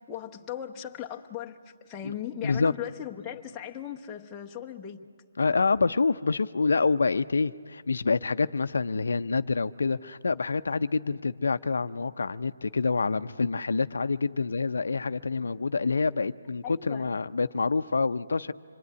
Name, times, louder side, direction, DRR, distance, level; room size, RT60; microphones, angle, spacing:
voice 1, 0.0-5.0 16.6-17.1, left 10 dB, 10° left, -1 dB, 0.9 m, -38 dB
voice 2, 5.4-18.5, left 4 dB, 75° left, 12 dB, 0.6 m, -27 dB
26.0 x 22.5 x 9.5 m, 2.1 s
hypercardioid pair, 165°, 0 cm